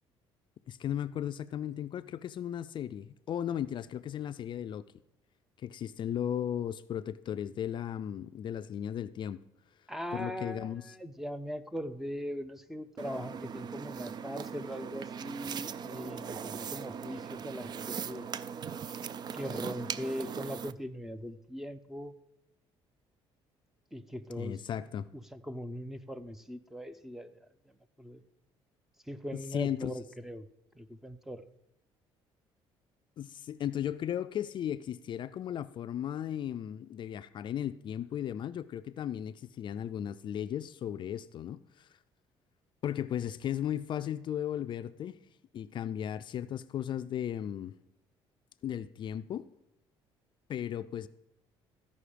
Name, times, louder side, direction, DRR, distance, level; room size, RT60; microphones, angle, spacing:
voice 1, 0.7-4.8 5.6-9.4 10.1-10.8 24.4-25.1 29.3-29.9 33.2-41.9 42.8-45.2 45.5-47.8 48.6-49.5 50.5-51.1, left 10 dB, 50° left, 0.4 m, -36 dB
voice 2, 9.9-18.3 19.3-22.2 23.9-24.6 25.1-28.2 29.1-30.5 30.7-31.4, equal, 5° right, 0.6 m, -40 dB
sound 1, 13.0-20.7, right 7 dB, 40° right, 0.4 m, -40 dB
14.0 x 5.4 x 5.0 m
cardioid pair, 95°, 10 cm